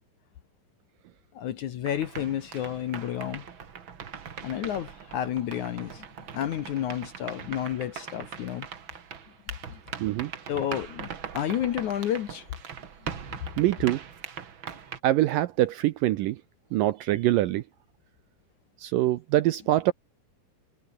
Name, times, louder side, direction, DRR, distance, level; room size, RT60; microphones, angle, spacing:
voice 1, 1.4-3.4 4.4-6.1 6.3-8.7 9.7-9.8 10.5-12.5, left 10 dB, 65° left, 2.1 m, -31 dB
sound 1, 1.9-15.0, right 7 dB, 45° right, 1.8 m, -41 dB
voice 2, 10.0-10.3 13.6-14.0 15.0-16.4 16.7-17.6 18.8-19.9, right 15 dB, 75° right, 2.1 m, -24 dB
omnidirectional pair, 4.6 m